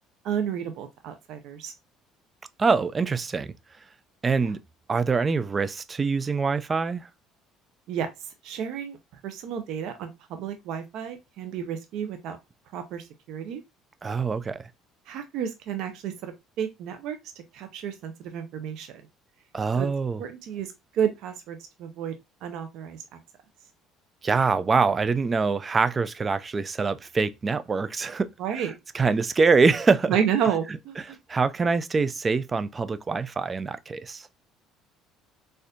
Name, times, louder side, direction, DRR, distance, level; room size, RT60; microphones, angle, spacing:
voice 1, 0.2-1.7 4.4-4.5 7.9-8.1 8.4-9.0 9.2-12.4 12.7-13.6 15.1-17.2 17.5-19.0 19.8-19.9 20.2-22.1 22.4-23.0 28.4-28.8 29.0-29.1 30.1-31.2, right 8 dB, 65° right, 0.6 m, -31 dB
voice 2, 2.6-3.5 4.2-4.6 4.9-7.1 14.0-14.7 19.5-20.2 24.2-28.3 28.9-30.1 31.3-34.3, right 4 dB, 25° right, 0.3 m, -24 dB
4.2 x 2.6 x 2.4 m
cardioid pair, 130°, 0 cm